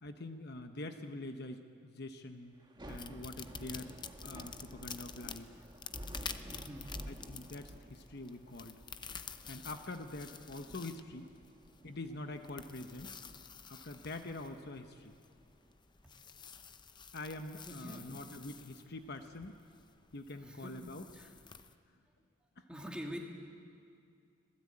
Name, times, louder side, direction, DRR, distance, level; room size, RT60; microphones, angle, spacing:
voice 1, 0.0-2.5 2.9-4.0 4.2-5.6 7.1-8.8 9.5-11.3 11.8-13.2 13.7-15.2 17.1-19.6 20.1-21.1, left 2 dB, 55° left, 7 dB, 1.1 m, -45 dB
Thunder / Rain, 2.6-15.8, equal, 20° right, 1.4 m, -52 dB
sound 1, 2.9-21.7, left 6 dB, 20° left, 0.7 m, -50 dB
voice 2, 6.5-6.9 17.6-18.1 20.4-20.8 21.1-21.3 22.7-23.2, equal, 5° right, 0 dB, 2.4 m, -45 dB
26.0 x 17.0 x 8.7 m, 2.3 s
head